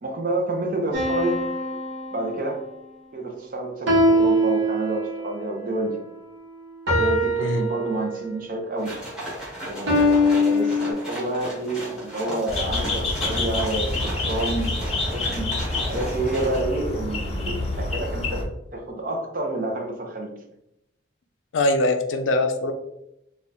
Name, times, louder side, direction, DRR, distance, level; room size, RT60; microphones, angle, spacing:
voice 1, 0.0-1.4 2.1-2.6 3.1-6.0 6.9-8.9 9.6-15.6 15.9-20.3, right 2 dB, 45° right, 3 dB, 0.5 m, -29 dB
sound 1, 0.9-2.7 3.9-5.3 6.9-8.4 9.9-10.9, left 1 dB, 80° right, 1.0 m, -22 dB
sound 2, 8.8-16.6, equal, 5° right, 1.1 m, -35 dB
sound 3, 12.5-18.4, left 2 dB, 35° left, 0.6 m, -27 dB
voice 2, 21.5-22.7, left 2 dB, 80° left, 7 dB, 0.4 m, -22 dB
4.2 x 2.3 x 2.6 m, 0.82 s
head